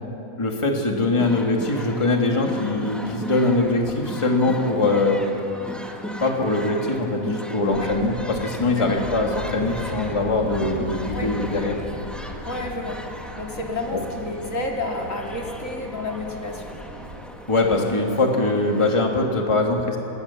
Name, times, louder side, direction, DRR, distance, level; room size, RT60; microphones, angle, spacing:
voice 1, 0.4-5.3 6.2-11.8 13.9-14.0 17.5-20.0, left 2 dB, 20° left, 1 dB, 2.0 m, -22 dB
sound 1, 1.2-18.9, equal, ahead, 1.6 m, -37 dB
sound 2, 7.7-17.2, equal, 55° right, 4.3 m, -37 dB
voice 2, 12.4-13.0 13.4-16.7, left 2 dB, 55° left, 0 dB, 2.8 m, -30 dB
29.0 x 18.0 x 7.1 m, 2.9 s
omnidirectional pair, 1.6 m